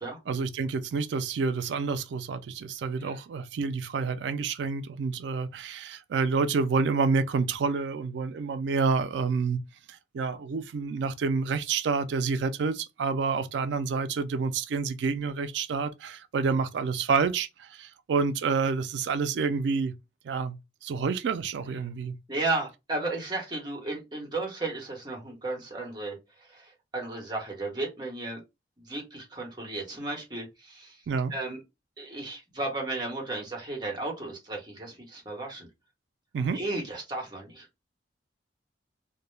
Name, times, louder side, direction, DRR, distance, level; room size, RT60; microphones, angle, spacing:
voice 1, 0.3-9.6 9.9-19.9 20.2-22.2 31.1-31.3 36.3-36.6, right 5 dB, 80° right, 0.3 m, -28 dB
voice 2, 22.3-26.2 26.5-28.4 28.8-31.0 31.3-31.6 32.0-35.7 36.5-37.7, right 2 dB, 25° right, 0.9 m, -34 dB
2.1 x 2.0 x 3.1 m
head